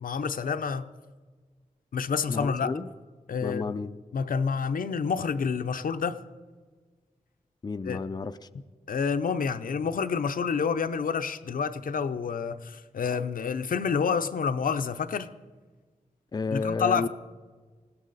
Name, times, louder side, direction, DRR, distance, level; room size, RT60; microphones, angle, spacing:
voice 1, 0.0-0.9 1.9-2.7 3.3-3.8 4.1-6.2 7.9-8.0 8.9-15.3 16.5-17.1, left 6 dB, 80° left, 0.7 m, -28 dB
voice 2, 2.3-2.9 3.4-4.0 7.6-8.4 16.3-17.1, left 4 dB, 30° left, 0.5 m, -31 dB
20.5 x 16.5 x 4.1 m
wide cardioid pair, 150°, 14 cm